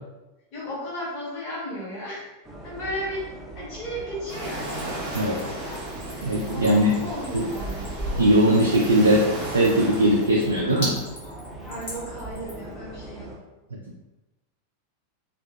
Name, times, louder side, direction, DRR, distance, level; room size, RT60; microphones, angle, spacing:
voice 1, 0.5-2.3 2.6-5.1 6.5-7.9 11.7-13.4, equal, 35° left, -11 dB, 1.1 m, -35 dB
sound 1, 2.4-13.4, right 1 dB, 5° right, 0.6 m, -39 dB
sound 2, 4.3-10.3, right 1 dB, 40° right, 0.8 m, -35 dB
Splash splatter / Trickle dribble, 4.4-12.7, equal, 55° left, 1.3 m, -40 dB
voice 2, 5.1-5.5 6.2-7.0 7.3-7.5 8.2-11.0 13.7-13.8, right 1 dB, 75° right, -3 dB, 0.4 m, -20 dB
2.7 x 2.4 x 2.3 m, 1.0 s
figure-of-eight pair, 90°, 0 cm